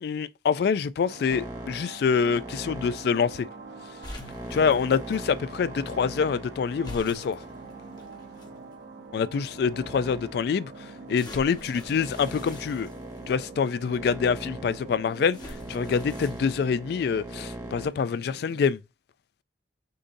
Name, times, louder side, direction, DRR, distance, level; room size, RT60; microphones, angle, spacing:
voice 1, 0.0-3.5 4.5-7.4 9.1-10.7 11.1-12.9 13.3-15.4 15.7-18.8, left 6 dB, 60° left, 0.3 m, -26 dB
sound 1, 1.0-18.6, right 3 dB, 70° right, 0.8 m, -45 dB
sound 2, 1.3-8.7 9.3-17.9, right 1 dB, 20° right, 1.1 m, -41 dB
sound 3, 4.0-5.2 6.8-8.5 9.2-9.3 11.1-13.5 15.3-16.5, left 1 dB, 25° left, 0.9 m, -44 dB
6.5 x 2.7 x 2.6 m
head